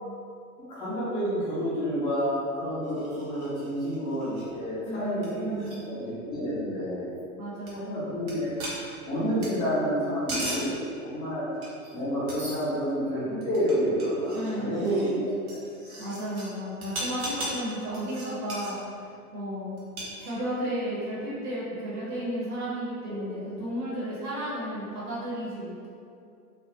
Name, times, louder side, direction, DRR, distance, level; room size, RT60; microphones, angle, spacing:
voice 1, 0.7-7.0 7.7-8.5 9.1-10.7 11.0-11.5 11.9-15.1, equal, 10° left, -11 dB, 0.4 m, -29 dB
sound 1, 2.8-4.5 4.9-5.0 5.2-5.3 5.5-5.8 7.7-7.8 8.3-8.4 8.6-9.5 10.0-10.7 11.6-12.0 12.3-12.9 13.4-16.5 16.8-18.7 19.8-20.6, right 1 dB, 65° right, 0.8 m, -38 dB
voice 2, 4.9-5.8 7.4-8.1 14.3-15.3 16.0-19.0 19.3-19.8 20.2-25.9, equal, 30° right, -9 dB, 0.8 m, -33 dB
2.2 x 2.2 x 2.8 m, 2.4 s
figure-of-eight pair, 100°, 45 cm